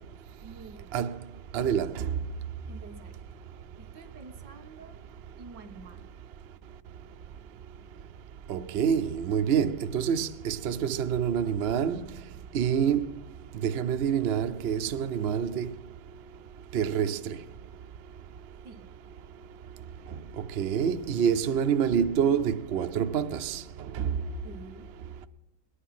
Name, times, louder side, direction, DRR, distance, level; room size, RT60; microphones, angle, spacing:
voice 1, 0.4-1.0 2.7-3.2 3.8-5.0 5.4-6.1 18.6-18.9 24.4-25.0, right 3 dB, 85° right, 1.9 m, -48 dB
voice 2, 1.5-1.9 8.5-12.1 12.5-13.0 13.6-15.7 16.7-17.2 20.6-23.6 24.0-24.1, right 8 dB, 60° right, 0.7 m, -27 dB
20.5 x 10.0 x 5.9 m
omnidirectional pair, 1.8 m